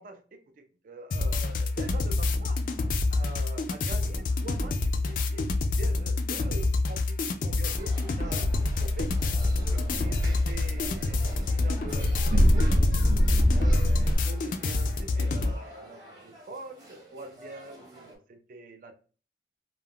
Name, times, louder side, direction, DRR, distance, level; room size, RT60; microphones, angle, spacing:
voice 1, 0.0-2.6 3.1-9.1 9.6-12.7 13.5-18.9, right 2 dB, 50° right, 6 dB, 0.3 m, -44 dB
sound 1, 1.1-15.5, left 3 dB, 50° left, 0.3 m, -27 dB
sound 2, 7.6-18.2, right 1 dB, 25° right, 0.8 m, -48 dB
sound 3, 8.5-14.2, equal, 75° right, 0.7 m, -26 dB
2.3 x 2.0 x 3.5 m, 0.39 s
head